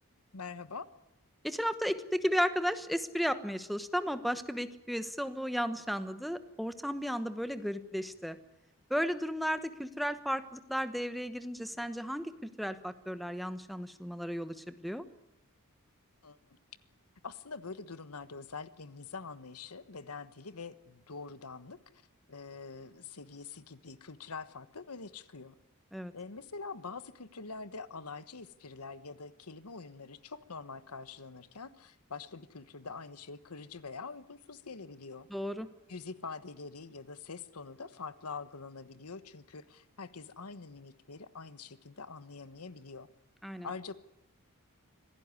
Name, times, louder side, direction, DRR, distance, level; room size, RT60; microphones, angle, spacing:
voice 1, 0.3-0.9 16.2-16.4 17.2-21.8 22.3-25.5 26.1-35.3 35.9-43.1 43.6-43.9, left 4 dB, 90° left, 13 dB, 1.3 m, -45 dB
voice 2, 1.4-8.4 8.9-12.3 12.6-15.0 25.9-26.1 35.3-35.7 43.4-43.7, equal, ahead, 10 dB, 1.1 m, -34 dB
25.5 x 17.0 x 9.7 m, 0.87 s
head